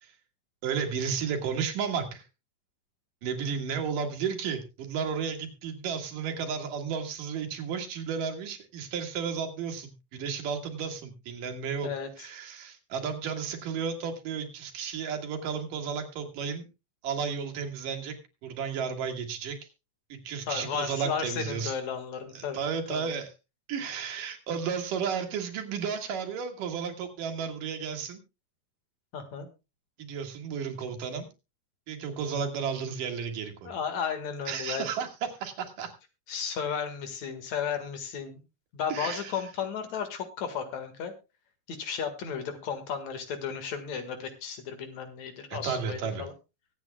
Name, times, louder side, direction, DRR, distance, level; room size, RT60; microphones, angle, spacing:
voice 1, 0.6-2.2 3.2-11.9 12.2-16.6 17.0-18.2 18.4-19.6 20.1-21.7 22.3-23.3 23.7-28.2 30.0-31.3 31.9-33.7 34.5-35.1 35.4-35.9 38.9-39.3 45.5-46.3, right 6 dB, 80° right, 3 dB, 3.4 m, -33 dB
voice 2, 11.8-12.3 20.5-22.6 22.9-23.1 29.1-29.5 33.6-34.9 36.3-38.4 38.7-41.1 41.7-46.3, left 7 dB, 60° left, 8 dB, 2.9 m, -34 dB
23.0 x 8.5 x 2.3 m, 0.27 s
omnidirectional pair, 3.8 m